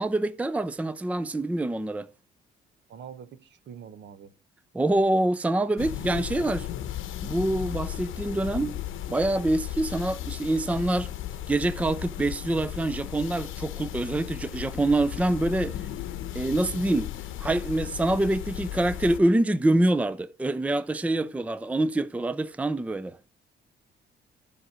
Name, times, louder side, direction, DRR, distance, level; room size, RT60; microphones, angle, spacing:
voice 1, 0.0-2.1 4.7-6.7 7.2-8.8 9.1-11.1 11.5-15.8 16.3-17.1 17.4-23.2, right 1 dB, 5° right, 0.5 m, -25 dB
voice 2, 2.9-4.3, right 8 dB, 65° right, 1.0 m, -44 dB
sound 1, 5.8-19.2, left 12 dB, 85° left, 0.9 m, -36 dB
12.0 x 5.0 x 6.1 m
cardioid pair, 90°, 20 cm